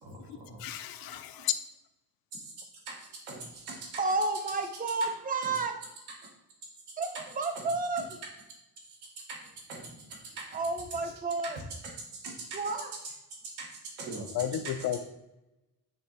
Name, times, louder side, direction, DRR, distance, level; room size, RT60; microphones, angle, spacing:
voice 1, 0.0-0.7 2.3-2.5 2.9-3.9 5.4-5.5 7.5-7.7 9.3-9.4 9.7-10.4 12.1-12.5 13.6-13.7 14.0-14.9, right 3 dB, 80° right, -2 dB, 1.5 m, -42 dB
voice 2, 0.6-1.5 14.3-15.0, left 11 dB, 65° left, 10 dB, 0.6 m, -32 dB
voice 3, 4.0-5.8 7.0-8.1 10.5-11.6 12.5-12.9, right 3 dB, 20° right, 6 dB, 0.6 m, -31 dB
8.7 x 3.0 x 4.1 m, 0.94 s
cardioid pair, 175°, 39 cm